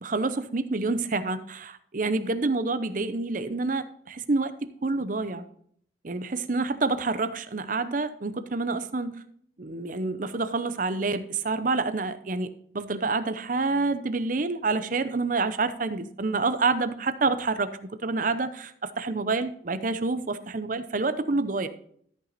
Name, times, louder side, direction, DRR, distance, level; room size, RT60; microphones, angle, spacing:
voice 1, 0.0-4.5 4.8-5.4 6.0-9.2 9.6-12.5 12.7-17.7 18.0-21.7, right 3 dB, 45° right, 11 dB, 0.7 m, -28 dB
13.5 x 5.9 x 4.1 m, 0.63 s
head